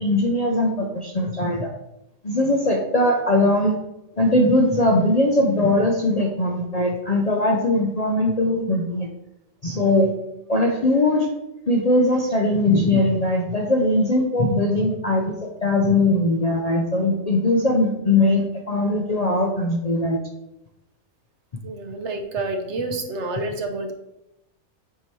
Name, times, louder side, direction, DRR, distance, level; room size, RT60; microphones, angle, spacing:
voice 1, 0.0-1.7 2.2-3.7 4.2-9.1 9.6-10.1 10.5-11.3 11.7-20.2, left 1 dB, 45° left, 0 dB, 0.5 m, -20 dB
voice 2, 21.6-23.9, right 2 dB, 60° right, 5 dB, 1.0 m, -28 dB
7.9 x 2.9 x 4.6 m, 0.88 s
omnidirectional pair, 1.5 m